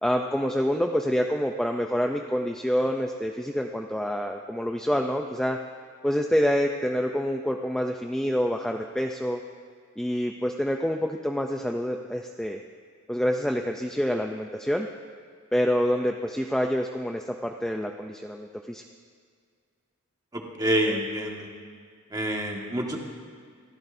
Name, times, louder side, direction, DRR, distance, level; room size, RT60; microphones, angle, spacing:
voice 1, 0.0-5.6 6.0-9.4 10.0-12.6 13.1-14.9 15.5-18.8, equal, 5° left, 3 dB, 0.5 m, -27 dB
voice 2, 20.3-21.5 22.1-23.0, right 1 dB, 15° right, 0 dB, 1.7 m, -27 dB
29.0 x 15.0 x 2.7 m, 2.1 s
head